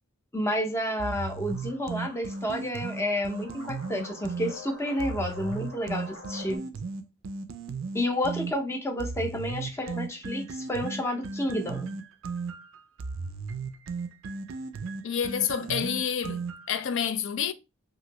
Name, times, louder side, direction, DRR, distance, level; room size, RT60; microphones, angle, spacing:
voice 1, 0.3-6.6 7.9-11.9, left 1 dB, 15° left, 0.6 m, -30 dB
sound 1, 1.0-4.5 5.0-8.5 9.0-16.8, right 4 dB, 70° right, 0.4 m, -36 dB
sound 2, 1.3-6.6, left 2 dB, 80° left, 1.5 m, -46 dB
voice 2, 15.0-16.4 16.7-17.5, left 8 dB, 65° left, 0.4 m, -28 dB
3.0 x 2.6 x 2.8 m
head